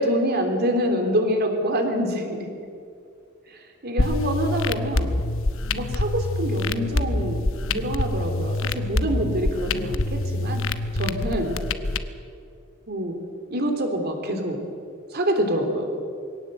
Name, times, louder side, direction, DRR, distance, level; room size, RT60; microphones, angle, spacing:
voice 1, 0.0-2.5 3.5-5.1 5.7-10.6 10.9-11.6 12.9-13.2 13.5-14.6 15.1-15.9, equal, 50° right, 4 dB, 3.3 m, -26 dB
sound 1, 4.0-12.0, left 2 dB, 70° left, 1.0 m, -26 dB
22.5 x 17.5 x 7.9 m, 2.4 s
head